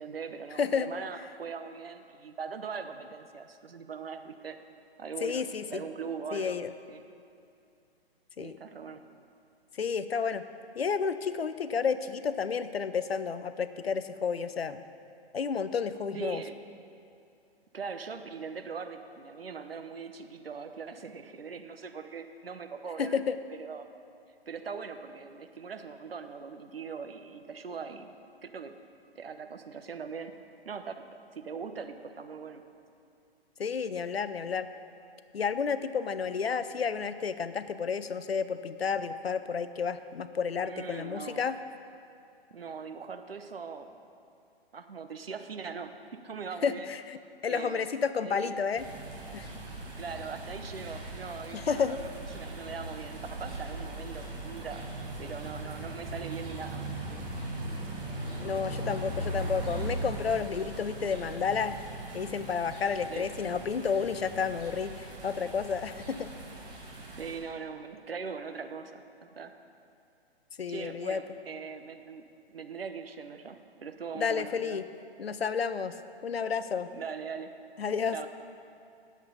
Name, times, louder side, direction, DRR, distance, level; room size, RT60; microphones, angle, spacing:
voice 1, 0.0-4.6 5.0-6.6 6.9-7.0 8.4-9.0 16.1-16.6 17.7-23.2 23.6-23.9 24.5-28.1 28.4-28.7 29.1-30.3 30.6-32.6 40.6-41.5 42.5-44.0 44.7-46.9 47.5-47.9 48.2-48.5 49.9-54.9 55.2-57.2 63.1-63.3 67.2-69.5 70.7-74.8 76.9-77.5 78.1-78.3, right 5 dB, 65° right, 8 dB, 0.9 m, -41 dB
voice 2, 0.6-0.9 5.2-5.8 6.3-6.7 8.4-8.6 9.7-10.5 10.8-14.8 15.3-16.4 23.0-23.4 33.6-34.7 35.3-41.6 46.6-48.8 49.3-49.5 51.5-52.0 58.4-61.8 62.1-66.3 70.6-71.2 74.1-74.8 75.2-76.0 76.2-76.9 77.8-78.3, left 6 dB, 70° left, 12 dB, 0.6 m, -31 dB
sound 1, 48.8-67.4, right 1 dB, 15° right, 1.7 m, -39 dB
18.5 x 7.5 x 4.0 m, 2.5 s
figure-of-eight pair, 125°, 31 cm